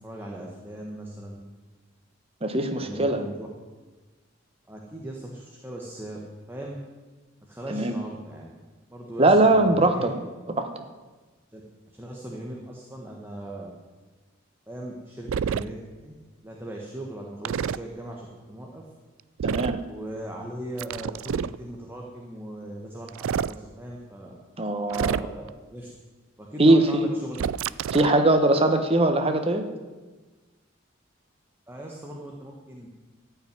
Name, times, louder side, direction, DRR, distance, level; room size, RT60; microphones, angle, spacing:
voice 1, 0.0-1.4 2.8-3.5 4.7-6.2 6.5-6.8 7.4-8.5 8.9-10.1 11.5-11.6 11.9-13.7 14.7-16.2 16.4-18.9 19.8-24.4 24.9-25.9 26.4-27.4 31.7-32.9, right 1 dB, 10° right, -2 dB, 1.4 m, -39 dB
voice 2, 2.4-3.2 7.7-8.0 9.2-10.1 10.6-10.7 19.4-19.8 24.6-25.2 26.6-27.1 27.9-29.7, right 2 dB, 30° right, 6 dB, 1.1 m, -21 dB
sound 1, 15.3-15.6 17.4-17.8 19.4-19.8 20.8-21.6 23.1-23.5 24.9-25.5 27.3-28.2, right 7 dB, 85° right, 0.3 m, -28 dB
14.0 x 5.9 x 9.6 m, 1.3 s
head